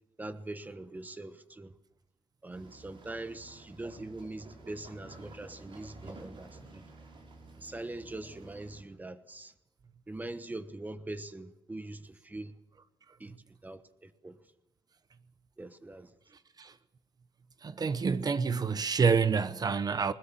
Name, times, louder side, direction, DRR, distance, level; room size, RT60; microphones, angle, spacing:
voice 1, 0.2-1.7 2.4-6.8 7.6-9.5 10.1-12.5 13.2-13.4 13.6-14.4 15.6-16.1, right 2 dB, 15° right, 1.2 m, -42 dB
sound 1, 2.5-8.8, right 2 dB, 55° right, 5.3 m, -51 dB
voice 2, 17.6-20.1, right 5 dB, 40° right, 1.0 m, -27 dB
21.0 x 20.5 x 7.5 m
wide cardioid pair, 150°, 10 cm